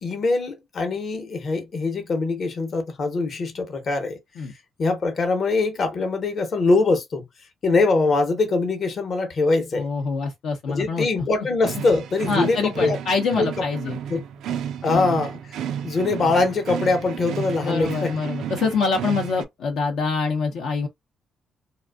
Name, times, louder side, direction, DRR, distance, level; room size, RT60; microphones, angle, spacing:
voice 1, 0.0-4.2 4.8-7.2 7.6-9.9 10.7-13.0 13.4-13.5 14.1-14.2 14.8-15.4 15.8-18.1, left 3 dB, 50° left, 0.8 m, -22 dB
voice 2, 9.7-11.1 12.3-14.0 14.8-15.1 17.6-20.9, left 4 dB, 80° left, 0.6 m, -25 dB
sound 1, 11.6-19.4, right 9 dB, 80° right, 0.3 m, -32 dB
2.5 x 2.3 x 2.3 m
cardioid pair, 90°, 0 cm